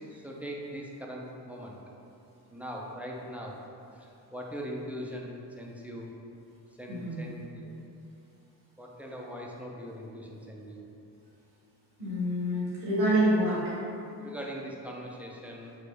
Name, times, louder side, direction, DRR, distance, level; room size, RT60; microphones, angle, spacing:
voice 1, 0.2-1.8 2.5-3.6 4.0-6.1 6.8-7.7 8.8-10.8 14.2-15.7, equal, 5° right, -2 dB, 0.5 m, -40 dB
voice 2, 6.9-7.3 12.0-13.6, right 1 dB, 85° right, -9 dB, 1.3 m, -27 dB
4.2 x 2.1 x 3.2 m, 2.7 s
hypercardioid pair, 40°, 48 cm